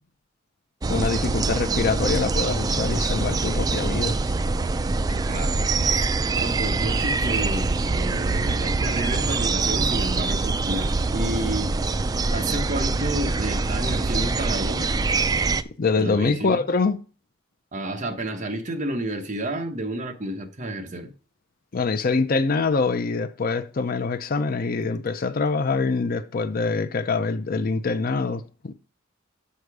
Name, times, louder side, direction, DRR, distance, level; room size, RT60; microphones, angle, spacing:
sound 1, 0.8-15.6, right 3 dB, 20° right, 0.3 m, -24 dB
voice 1, 0.9-4.2 15.8-17.0 21.7-28.7, left 4 dB, 45° left, 0.5 m, -24 dB
voice 2, 5.3-12.0 12.3-14.9 16.0-16.6 17.7-21.1, right 1 dB, 40° right, 1.0 m, -31 dB
6.6 x 5.6 x 4.8 m
head